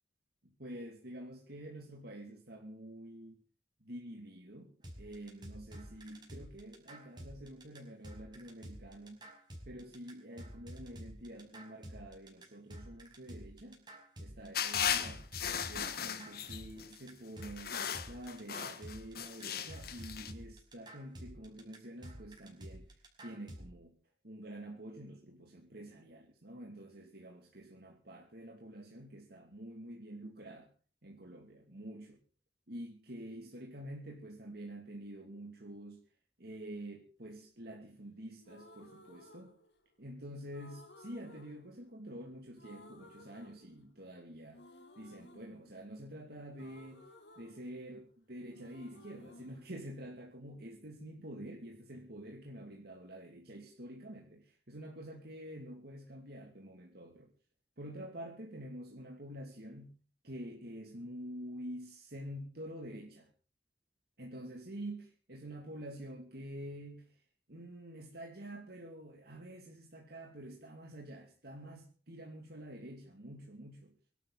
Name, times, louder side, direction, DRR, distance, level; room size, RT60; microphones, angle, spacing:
voice 1, 0.6-3.4 3.8-4.7 5.0-9.3 9.7-13.8 14.2-15.3 15.7-17.8 18.1-22.9 23.2-23.9 24.2-30.7 31.0-32.2 32.7-36.0 36.4-39.5 40.0-44.6 45.0-47.1 47.4-57.3 57.8-60.0 60.2-63.3 64.2-67.1 67.5-73.9, right 1 dB, 60° right, 2.9 m, -47 dB
sound 1, 4.8-23.7, equal, 25° right, 5.5 m, -50 dB
sound 2, 14.5-16.9 17.4-20.3, left 8 dB, 60° left, 1.5 m, -37 dB
sound 3, 38.4-40.1 40.5-42.3 42.6-44.1 44.5-48.2 48.5-50.6, left 1 dB, 80° left, 2.9 m, -58 dB
24.5 x 12.5 x 4.2 m
head